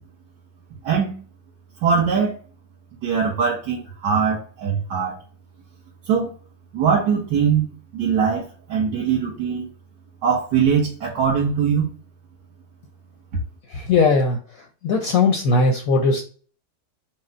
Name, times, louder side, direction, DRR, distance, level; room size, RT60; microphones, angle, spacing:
voice 1, 0.8-1.2 1.8-2.4 3.0-5.2 6.1-6.3 6.7-7.7 7.9-9.7 10.2-11.9, right 6 dB, 80° right, -5 dB, 1.8 m, -21 dB
voice 2, 13.7-14.4 14.8-16.2, left 3 dB, 65° left, 3 dB, 0.9 m, -18 dB
4.8 x 2.0 x 4.2 m, 0.40 s
omnidirectional pair, 1.9 m